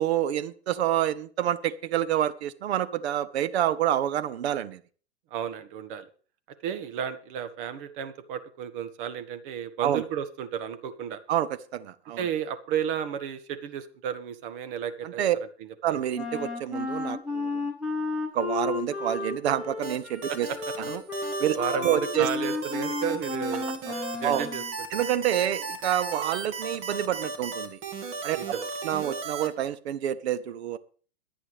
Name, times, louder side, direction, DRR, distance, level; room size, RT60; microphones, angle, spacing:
voice 1, 0.0-4.8 9.8-10.0 11.3-12.3 15.0-15.4 15.8-17.7 18.3-20.5 20.9-21.0 21.4-22.3 24.2-24.4 24.9-27.8 28.2-28.4 28.8-30.8, right 11 dB, 65° right, 13 dB, 1.2 m, -28 dB
voice 2, 5.3-6.1 6.6-11.2 12.2-15.2 20.3-20.6 21.5-24.6 24.9-25.0 28.3-28.7, right 8 dB, 50° right, 9 dB, 1.7 m, -33 dB
Wind instrument woodwind instrument, 16.1-24.7, left 3 dB, 5° right, 3.3 m, -33 dB
sound 1, 19.8-29.5, right 4 dB, 35° right, 2.3 m, -35 dB
23.0 x 8.5 x 3.4 m, 0.42 s
hypercardioid pair, 120°, 34 cm